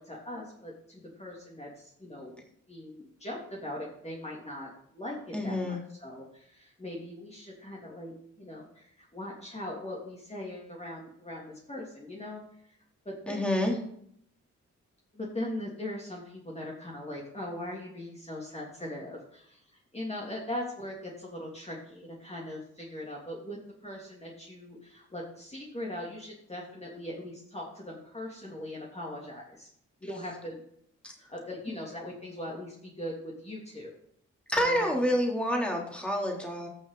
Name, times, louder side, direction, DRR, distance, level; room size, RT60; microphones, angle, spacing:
voice 1, 0.0-2.3 2.7-5.2 5.4-12.7 13.0-13.5 15.1-19.6 19.9-29.7 30.0-30.6 31.3-33.9 34.5-35.2, left 1 dB, 20° left, -3 dB, 3.0 m, -40 dB
voice 2, 5.3-5.8 13.3-13.7 31.0-31.1 34.5-36.7, equal, 5° left, -1 dB, 3.5 m, -28 dB
14.5 x 6.6 x 4.2 m, 0.69 s
supercardioid pair, 55°, 31 cm